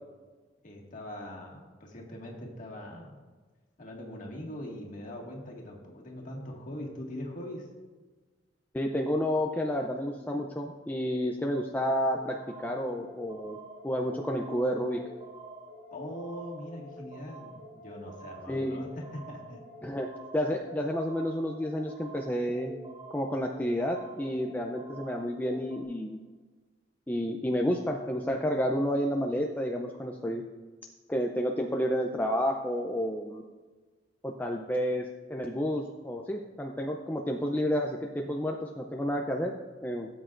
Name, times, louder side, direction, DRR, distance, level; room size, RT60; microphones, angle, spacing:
voice 1, 0.6-3.2 3.8-7.7 15.9-19.6, left 1 dB, 45° left, -1 dB, 1.9 m, -41 dB
voice 2, 8.7-13.6 13.8-15.0 18.5-18.8 19.8-20.1 20.3-22.7 23.1-26.2 27.1-30.4 31.1-33.4 34.2-40.1, equal, 10° left, 1 dB, 0.4 m, -30 dB
sound 1, 12.1-25.8, right 1 dB, 30° right, 1.4 m, -47 dB
16.5 x 8.0 x 2.5 m, 1.3 s
head